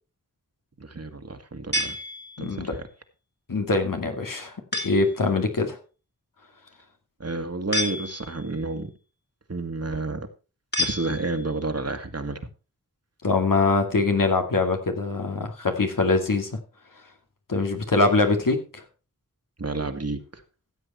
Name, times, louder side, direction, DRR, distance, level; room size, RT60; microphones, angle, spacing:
voice 1, 0.8-2.0 2.4-2.9 7.2-8.9 9.5-10.3 10.8-12.4 19.6-20.4, right 3 dB, 50° right, 8 dB, 1.8 m, -30 dB
sound 1, 1.7-2.7 4.7-5.2 7.7-8.6 10.7-11.6, left 1 dB, 30° left, 2.3 m, -30 dB
voice 2, 2.4-2.7 3.5-4.6 4.8-5.8 13.2-16.6 17.5-18.8, left 3 dB, 80° left, 4 dB, 2.3 m, -23 dB
14.5 x 8.0 x 4.3 m, 0.33 s
wide cardioid pair, 45°, 32 cm